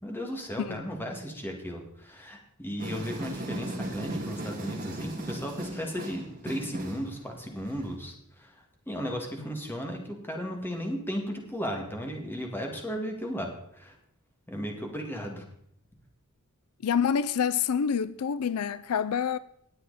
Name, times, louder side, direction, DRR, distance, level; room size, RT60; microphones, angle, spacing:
voice 1, 0.0-14.0 14.5-15.5, equal, 10° left, 2.1 m, -35 dB
sound 1, 2.8-7.9, right 1 dB, 40° right, 2.2 m, -37 dB
voice 2, 16.8-19.4, left 7 dB, 80° left, 0.4 m, -27 dB
19.5 x 7.8 x 4.2 m
head